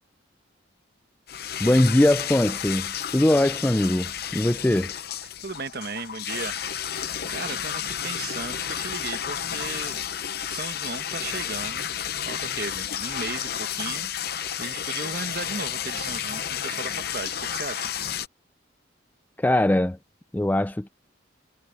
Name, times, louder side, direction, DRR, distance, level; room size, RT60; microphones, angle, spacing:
sound 1, 1.3-18.3, left 9 dB, 50° left, 0.7 m, -31 dB
voice 1, 1.6-4.9 19.4-20.0 20.3-20.9, left 1 dB, 10° left, 0.3 m, -21 dB
voice 2, 5.4-10.0 10.5-11.9 12.2-17.9, right 4 dB, 50° right, 1.2 m, -36 dB
head